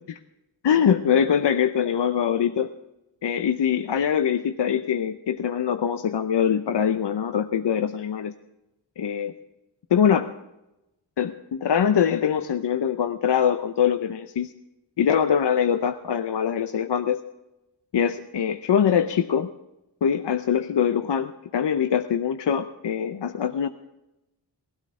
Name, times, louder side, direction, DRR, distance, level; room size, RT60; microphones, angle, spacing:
voice 1, 0.6-2.7 3.2-8.3 9.0-9.3 9.9-10.3 11.2-14.5 15.0-17.2 17.9-19.5 20.0-23.7, left 8 dB, 70° left, 9 dB, 0.7 m, -23 dB
18.5 x 13.0 x 3.7 m, 0.94 s
wide cardioid pair, 85°, 43 cm